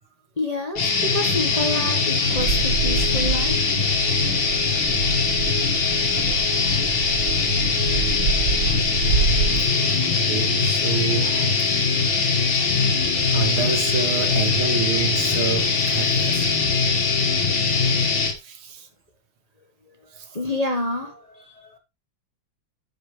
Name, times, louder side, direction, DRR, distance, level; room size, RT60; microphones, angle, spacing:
voice 1, 0.4-3.7 6.2-6.9 19.9-21.8, left 2 dB, 25° left, 1.1 m, -29 dB
sound 1, 0.8-18.3, left 4 dB, 70° left, 2.5 m, -21 dB
Bird vocalization bird call bird song, 2.4-9.6, right 4 dB, 60° right, 2.9 m, -27 dB
voice 2, 10.2-11.6 13.3-16.9 17.7-17.8 18.3-18.9 20.1-20.4, right 7 dB, 80° right, 2.4 m, -29 dB
13.0 x 5.8 x 3.2 m
omnidirectional pair, 2.2 m